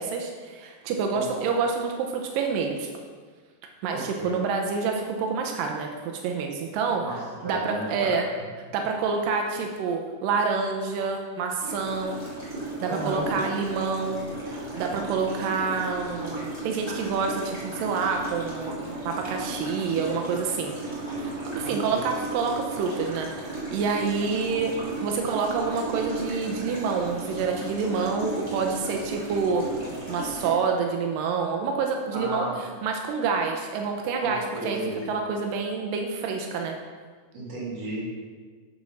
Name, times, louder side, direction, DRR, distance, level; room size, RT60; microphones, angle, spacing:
voice 1, 0.0-2.9 3.8-5.9 6.2-7.0 7.4-8.3 8.7-12.1 12.8-20.8 21.2-23.3 23.7-24.8 25.0-29.7 30.1-34.8 35.1-36.8, right 5 dB, 90° right, 2 dB, 2.3 m, -27 dB
voice 2, 3.9-4.3 7.0-8.2 12.9-13.3 21.6-22.0 32.1-32.6 34.2-35.2 37.3-38.0, right 2 dB, 50° right, -6 dB, 3.4 m, -33 dB
sound 1, 11.6-30.5, right 2 dB, 10° right, 2.3 m, -35 dB
9.6 x 4.4 x 6.0 m, 1.5 s
omnidirectional pair, 4.0 m